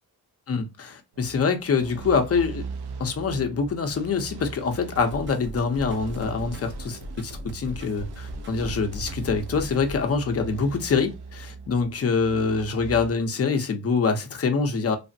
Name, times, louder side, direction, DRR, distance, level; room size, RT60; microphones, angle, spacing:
voice 1, 0.5-2.6 3.0-15.0, left 5 dB, 40° left, 0.7 m, -25 dB
sound 1, 1.1-13.1, right 4 dB, 80° right, 0.7 m, -40 dB
sound 2, 5.0-10.0, equal, 30° right, 0.6 m, -39 dB
3.3 x 2.1 x 2.6 m
cardioid pair, 125°, 38 cm